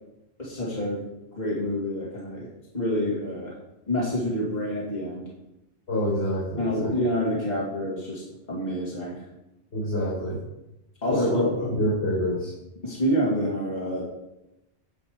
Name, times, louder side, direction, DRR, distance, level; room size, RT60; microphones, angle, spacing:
voice 1, 0.4-1.0 1.4-2.5 2.7-3.5 3.9-5.2 6.6-8.2 8.5-9.2 11.0-11.8 12.8-14.0, equal, 40° left, -6 dB, 2.2 m, -27 dB
voice 2, 5.9-6.9 9.7-10.4 11.1-11.5 11.8-12.5, equal, 85° left, -8 dB, 3.3 m, -26 dB
9.4 x 5.3 x 4.8 m, 0.92 s
omnidirectional pair, 1.1 m